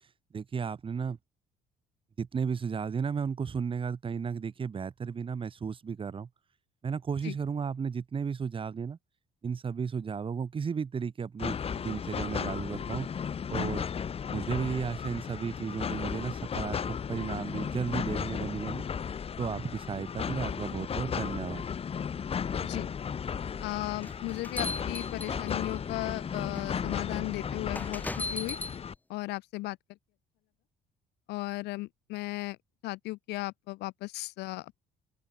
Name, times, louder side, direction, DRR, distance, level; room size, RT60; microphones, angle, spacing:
voice 1, 0.3-1.2 2.2-6.3 6.8-9.0 9.4-13.1 13.5-13.9 14.3-18.9 19.4-21.7, right 6 dB, 30° right, 1.6 m, -34 dB
sound 1, 11.4-28.9, left 7 dB, 35° left, 1.2 m, -35 dB
voice 2, 23.6-28.6 29.1-29.8 31.3-32.6 32.8-34.8, left 20 dB, 90° left, 1.3 m, -36 dB
sound 2, 24.0-25.8 26.6-26.7 27.7-28.8, left 2 dB, 10° left, 0.7 m, -37 dB
open air
cardioid pair, 110°, 17 cm